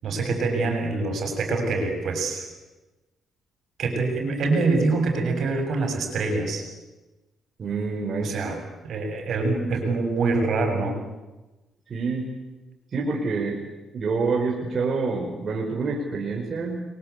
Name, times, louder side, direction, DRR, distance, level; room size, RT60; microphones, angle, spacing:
voice 1, 0.0-2.5 3.8-6.6 8.2-8.6 8.8-11.0, right 3 dB, 65° right, 5 dB, 7.5 m, -25 dB
voice 2, 7.6-8.3 11.9-12.3 12.9-13.6 13.9-16.8, right 4 dB, 45° right, -1 dB, 5.1 m, -27 dB
30.0 x 23.5 x 8.5 m, 1.1 s
cardioid pair, 110°, 0 cm